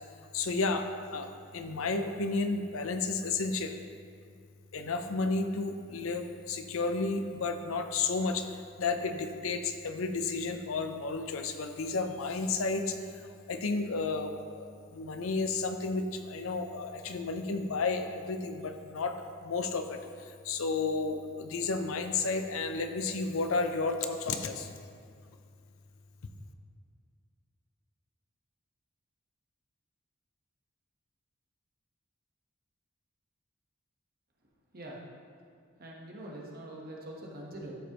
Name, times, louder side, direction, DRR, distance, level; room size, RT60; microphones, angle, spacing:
voice 1, 0.3-3.8 4.7-8.5 8.8-13.0 13.5-24.7, left 3 dB, 80° left, 7 dB, 0.6 m, -32 dB
voice 2, 35.8-37.7, right 1 dB, 45° right, -2 dB, 1.2 m, -44 dB
12.5 x 5.1 x 3.0 m, 2.2 s
head